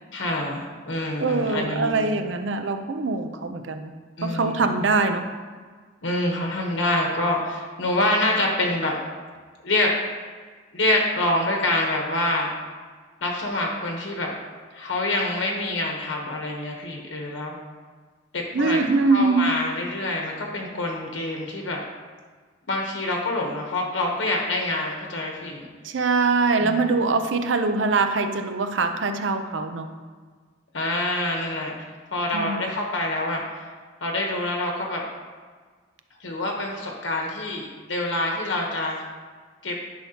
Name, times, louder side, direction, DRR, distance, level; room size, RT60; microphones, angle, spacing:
voice 1, 0.1-2.0 4.2-4.7 6.0-9.0 9.6-9.9 10.7-12.5 13.2-14.3 14.7-17.6 18.3-18.8 19.1-21.8 22.7-25.7 26.6-27.0 30.7-33.7 34.0-35.0 36.2-39.0 39.6-39.7, left 1 dB, 75° left, 0 dB, 1.1 m, -26 dB
voice 2, 1.2-3.9 4.2-5.2 18.5-19.5 25.8-29.9 32.3-32.7, right 3 dB, 70° right, 7 dB, 0.6 m, -23 dB
10.5 x 5.8 x 2.9 m, 1.5 s
head